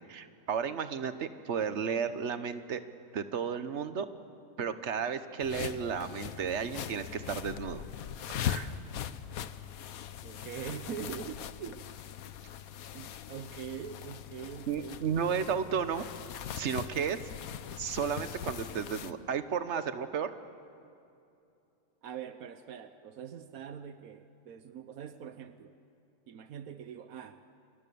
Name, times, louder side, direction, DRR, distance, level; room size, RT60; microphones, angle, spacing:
voice 1, 0.1-2.8 3.1-4.1 4.6-7.8 8.3-8.7 14.7-16.1 16.6-17.2 17.8-20.3, right 7 dB, 55° right, 11 dB, 1.3 m, -33 dB
sound 1, 5.4-19.1, left 10 dB, 80° left, 1.3 m, -40 dB
voice 2, 10.2-11.9 12.9-15.5 22.0-25.8 26.3-27.4, right 8 dB, 85° right, 10 dB, 1.4 m, -43 dB
30.0 x 24.5 x 7.0 m, 2.6 s
omnidirectional pair, 1.5 m